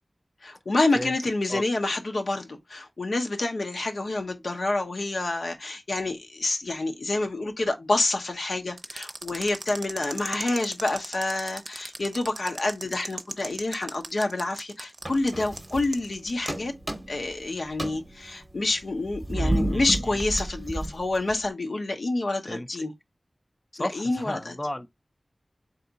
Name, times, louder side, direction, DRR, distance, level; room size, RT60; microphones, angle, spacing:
voice 1, 0.4-16.7 17.1-22.9 23.8-24.5, left 2 dB, 85° left, 0.7 m, -28 dB
sound 1, 8.8-16.6, right 2 dB, 65° right, 0.5 m, -37 dB
sound 2, 15.0-16.2 16.5-17.4 17.7-21.5, right 1 dB, 25° right, 0.7 m, -31 dB
voice 2, 19.3-20.2 22.4-22.7 23.7-24.9, left 1 dB, 25° left, 0.4 m, -34 dB
3.5 x 2.7 x 3.9 m
wide cardioid pair, 55°, 0 cm